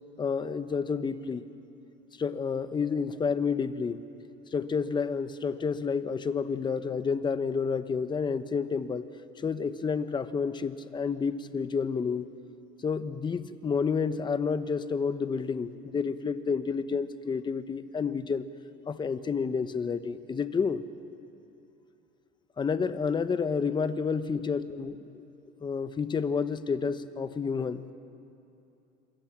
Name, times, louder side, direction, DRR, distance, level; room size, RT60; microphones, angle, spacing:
voice 1, 0.2-1.4 2.2-4.0 4.5-9.0 9.4-12.3 12.8-18.4 18.9-20.8 22.6-25.2 25.6-27.9, left 5 dB, 20° left, 11 dB, 1.0 m, -30 dB
27.0 x 24.0 x 7.4 m, 2.8 s
cardioid pair, 135°, 21 cm